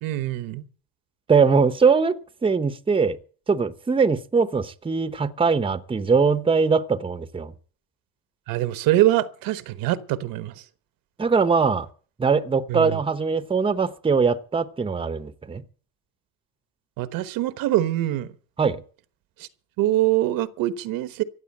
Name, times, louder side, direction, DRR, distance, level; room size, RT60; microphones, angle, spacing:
voice 1, 0.0-0.7 8.5-10.6 12.7-13.0 17.0-18.3 19.4-19.5 19.8-21.2, right 14 dB, 70° right, 1.1 m, -24 dB
voice 2, 1.3-3.2 3.5-7.5 11.2-11.9 12.2-15.6 18.6-18.8, right 5 dB, 15° right, 0.9 m, -21 dB
15.0 x 8.3 x 8.5 m
cardioid pair, 115°, 35 cm